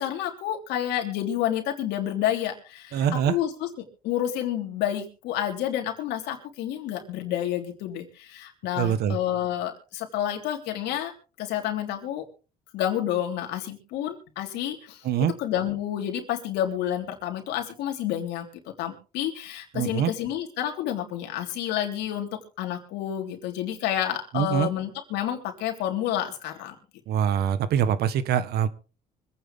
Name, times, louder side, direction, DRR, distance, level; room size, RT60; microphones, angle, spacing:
voice 1, 0.0-3.7 4.0-11.1 11.4-12.2 12.7-15.0 15.4-18.5 18.8-26.8, left 11 dB, 85° left, 3 dB, 3.5 m, -29 dB
voice 2, 2.9-3.4 8.8-9.2 15.0-15.3 19.7-20.1 24.3-24.7 27.1-28.7, right 9 dB, 70° right, 14 dB, 1.4 m, -24 dB
25.0 x 9.3 x 3.6 m, 0.36 s
cardioid pair, 110°, 17 cm